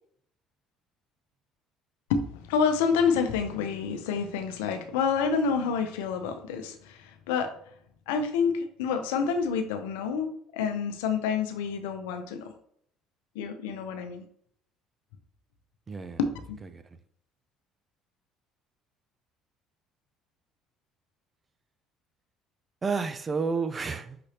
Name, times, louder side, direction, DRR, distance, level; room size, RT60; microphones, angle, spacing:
voice 1, 2.1-7.5 8.1-12.5 13.3-14.2 16.2-16.4, left 6 dB, 85° left, 0.6 m, -28 dB
voice 2, 15.9-16.3 16.5-16.8 22.8-24.2, right 5 dB, 30° right, 0.5 m, -31 dB
5.8 x 2.7 x 3.4 m
hypercardioid pair, 70°, 0 cm